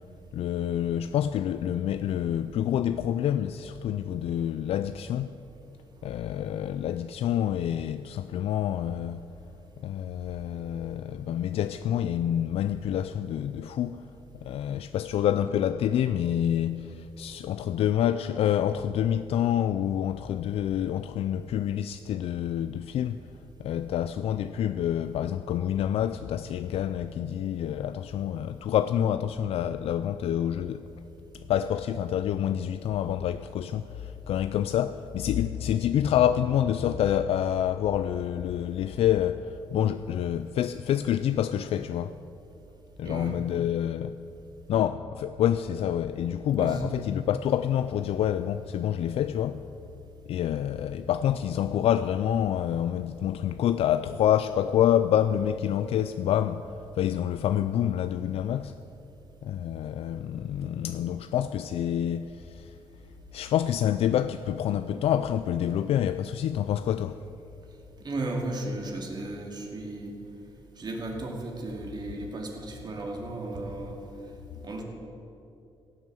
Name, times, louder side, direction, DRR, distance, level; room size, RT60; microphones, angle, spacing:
voice 1, 0.3-5.4 6.0-9.2 9.8-14.0 14.3-23.2 23.6-30.9 31.3-42.2 43.0-44.1 44.7-49.6 50.3-58.8 59.4-62.8 63.3-67.2, left 10 dB, 75° left, 0.4 m, -27 dB
voice 2, 46.6-46.9 68.0-70.1 70.8-74.0 74.6-74.8, right 2 dB, 45° right, 2.3 m, -34 dB
16.5 x 8.0 x 7.7 m
cardioid pair, 125°, 10 cm